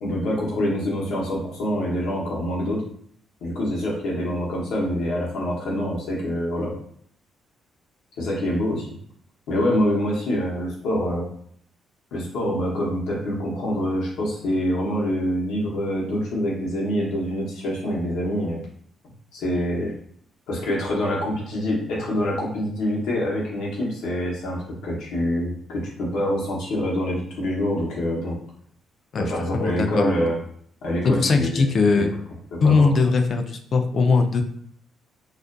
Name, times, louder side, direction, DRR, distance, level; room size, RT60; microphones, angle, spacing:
voice 1, 0.0-2.8 3.4-6.7 8.2-8.9 9.5-11.3 12.1-18.6 19.3-19.9 20.5-28.4 29.2-30.4 30.8-31.6 32.0-32.1 32.5-32.9, equal, 85° left, -3 dB, 0.8 m, -25 dB
voice 2, 29.1-30.1 31.0-32.1 32.6-34.4, left 4 dB, 50° left, 6 dB, 0.3 m, -20 dB
2.4 x 2.1 x 2.4 m, 0.64 s
cardioid pair, 90°, 0 cm